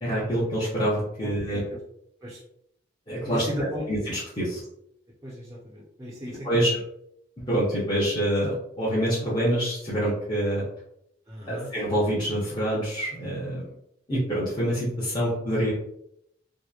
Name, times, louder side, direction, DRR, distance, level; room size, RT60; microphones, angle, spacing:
voice 1, 0.0-1.6 3.1-3.5 3.9-4.6 6.3-6.7 7.5-10.6 11.5-13.6 14.1-15.7, equal, 25° left, -10 dB, 0.7 m, -26 dB
voice 2, 1.2-1.8 2.2-2.4 3.2-3.9 5.2-6.8 11.3-11.7, equal, 15° right, -6 dB, 0.4 m, -36 dB
2.8 x 2.1 x 2.3 m, 0.75 s
head